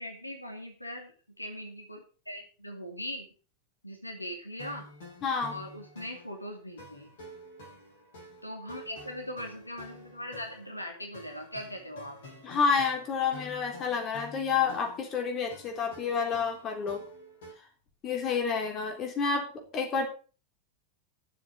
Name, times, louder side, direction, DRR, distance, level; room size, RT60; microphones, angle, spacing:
voice 1, 0.0-3.3 3.8-4.9 5.5-7.1 8.4-12.2, equal, 85° left, 3 dB, 2.5 m, -40 dB
sound 1, 4.6-17.5, equal, 60° left, 7.6 m, -49 dB
voice 2, 5.2-5.6 12.4-17.0 18.0-19.5 19.7-20.1, left 5 dB, 30° left, 3 dB, 3.6 m, -29 dB
11.0 x 7.4 x 6.3 m, 0.37 s
figure-of-eight pair, 90°, 0 cm